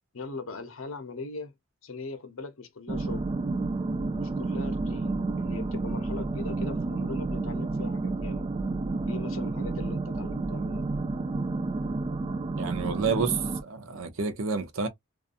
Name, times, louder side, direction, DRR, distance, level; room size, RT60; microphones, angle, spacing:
voice 1, 0.1-1.5 1.8-3.3 4.1-8.5 9.1-10.9, left 3 dB, 70° left, 0.7 m, -40 dB
sound 1, 2.9-13.6, right 3 dB, 25° right, 0.3 m, -30 dB
voice 2, 12.6-14.9, right 5 dB, 70° right, 0.6 m, -29 dB
2.6 x 2.3 x 2.4 m
head